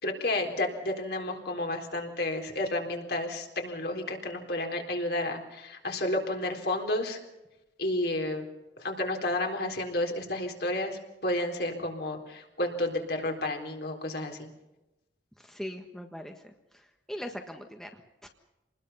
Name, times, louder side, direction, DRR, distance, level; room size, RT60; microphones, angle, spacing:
voice 1, 0.0-7.2 7.8-8.4 8.8-14.5, left 1 dB, 60° left, 2 dB, 3.9 m, -31 dB
voice 2, 15.4-18.3, equal, 5° left, 4 dB, 1.4 m, -41 dB
27.0 x 20.5 x 5.6 m, 0.97 s
head